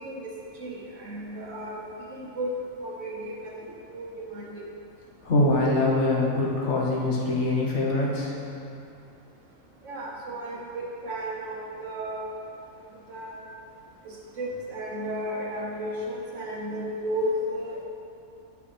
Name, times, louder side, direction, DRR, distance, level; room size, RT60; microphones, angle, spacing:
voice 1, 0.0-1.8 2.1-2.5 2.8-4.6 9.8-12.2 13.1-13.5 14.0-17.8, equal, 65° right, -3 dB, 1.2 m, -34 dB
voice 2, 5.2-8.3, left 2 dB, 60° left, -4 dB, 1.2 m, -24 dB
7.6 x 5.1 x 3.3 m, 2.6 s
omnidirectional pair, 1.4 m